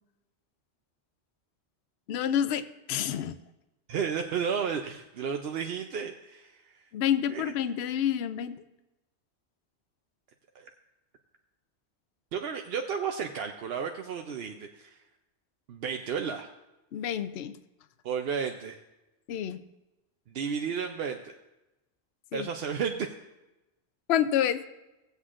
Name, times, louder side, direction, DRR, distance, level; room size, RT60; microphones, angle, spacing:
voice 1, 2.1-3.3 6.9-8.6 16.9-17.6 19.3-19.6 22.3-22.5 24.1-24.6, left 10 dB, 70° left, 11 dB, 0.8 m, -28 dB
voice 2, 3.9-6.8 7.3-7.5 10.5-10.7 12.3-15.0 15.7-16.5 18.0-18.8 20.3-21.3 22.3-23.1, right 6 dB, 65° right, 4 dB, 0.8 m, -33 dB
18.0 x 8.1 x 2.5 m, 1.0 s
omnidirectional pair, 1.2 m